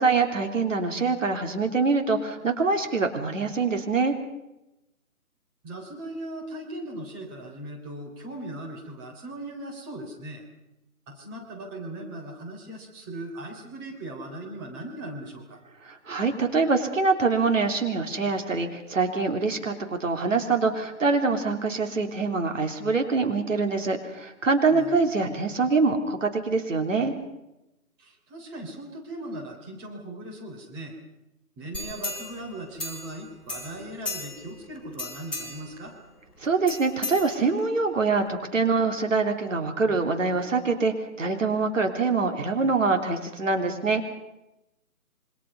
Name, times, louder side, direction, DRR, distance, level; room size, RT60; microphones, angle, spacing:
voice 1, 0.0-4.2 15.9-27.1 36.4-44.2, right 4 dB, 55° right, 4 dB, 3.5 m, -24 dB
voice 2, 5.6-10.4 11.1-15.6 24.7-25.0 28.0-31.0 31.6-36.0, right 1 dB, 15° right, 0 dB, 3.5 m, -39 dB
sound 1, 31.7-33.2 33.5-34.6 34.9-35.7 36.7-37.8 38.3-38.4, left 2 dB, ahead, 4.5 m, -36 dB
27.5 x 25.0 x 5.5 m, 0.91 s
figure-of-eight pair, 155°, 45 cm